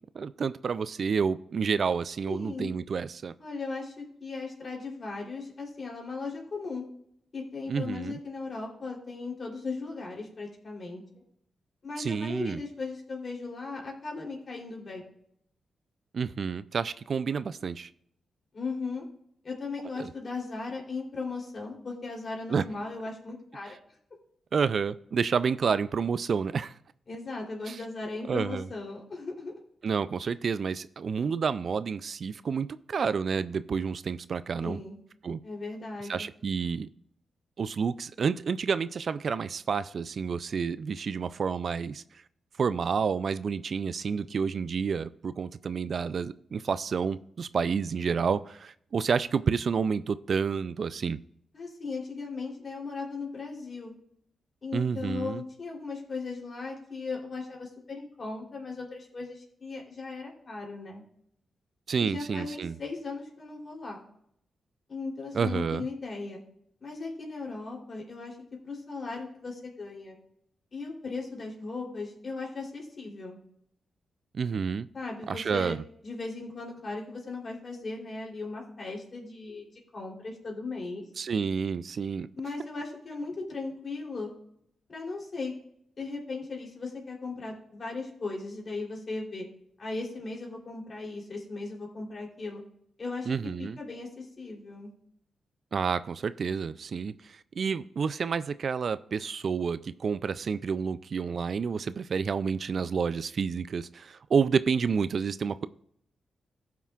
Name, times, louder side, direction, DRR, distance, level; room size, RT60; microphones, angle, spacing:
voice 1, 0.1-3.3 7.7-8.2 12.0-12.6 16.1-17.9 20.0-20.1 22.5-22.6 24.5-26.7 27.7-27.8 28.3-28.7 29.8-34.8 35.2-35.4 36.1-36.9 37.6-42.0 42.6-51.2 54.7-55.4 61.9-62.7 65.3-65.9 74.3-74.9 75.3-75.8 81.2-82.3 93.3-93.8 95.7-105.7, right 6 dB, 60° right, 0.3 m, -29 dB
voice 2, 2.3-2.7 3.4-6.8 7.3-11.2 11.8-15.0 18.5-19.0 19.4-23.8 27.1-29.6 34.6-35.0 35.4-36.3 51.5-53.9 54.6-61.0 62.0-64.0 64.9-66.4 66.8-68.4 68.6-70.2 70.7-73.4 74.9-75.8 76.0-81.0 82.4-84.3 84.9-85.5 86.0-89.5 89.8-92.6 93.0-94.9, left 3 dB, 50° left, 3.2 m, -37 dB
15.5 x 5.8 x 2.4 m
cardioid pair, 55°, 0 cm